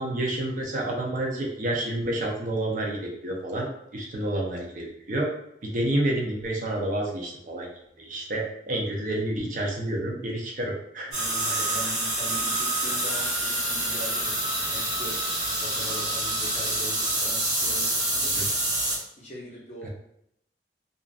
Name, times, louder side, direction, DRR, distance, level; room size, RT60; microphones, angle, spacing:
voice 1, 0.0-5.3 5.6-7.7 8.0-11.1 11.5-11.7 18.3-18.5 19.8-19.9, right 1 dB, 45° right, -1 dB, 0.5 m, -29 dB
voice 2, 11.1-14.4 14.7-15.1 15.6-18.5 19.2-19.9, equal, 40° left, -4 dB, 0.7 m, -41 dB
sound 1, 11.1-19.0, right 1 dB, 65° right, 1.3 m, -27 dB
2.5 x 2.4 x 2.3 m, 0.75 s
head